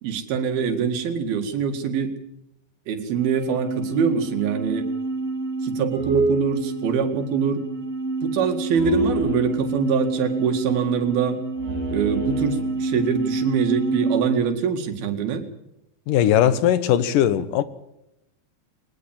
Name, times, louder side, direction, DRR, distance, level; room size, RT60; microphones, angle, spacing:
voice 1, 0.0-2.2 2.9-4.9 5.6-7.7 8.2-11.4 11.9-15.5, right 7 dB, 85° right, 3.9 m, -24 dB
sound 1, 3.2-14.4, right 2 dB, 40° right, 5.7 m, -27 dB
voice 2, 16.1-17.6, left 10 dB, 70° left, 2.6 m, -19 dB
21.5 x 20.5 x 7.5 m
omnidirectional pair, 4.2 m